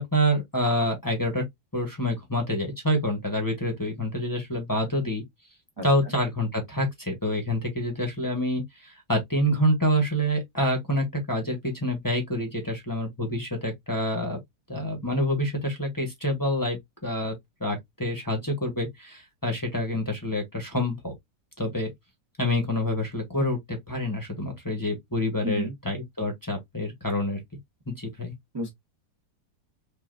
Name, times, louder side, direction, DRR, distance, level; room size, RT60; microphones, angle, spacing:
voice 1, 0.0-1.4 1.7-5.2 5.8-14.4 14.7-21.1 21.6-21.9 22.4-27.4 27.9-28.3, equal, 15° left, 0.8 m, -27 dB
voice 2, 5.8-6.1 25.4-25.7 28.5-28.7, right 1 dB, 25° right, 0.5 m, -33 dB
5.6 x 2.5 x 2.4 m
omnidirectional pair, 2.0 m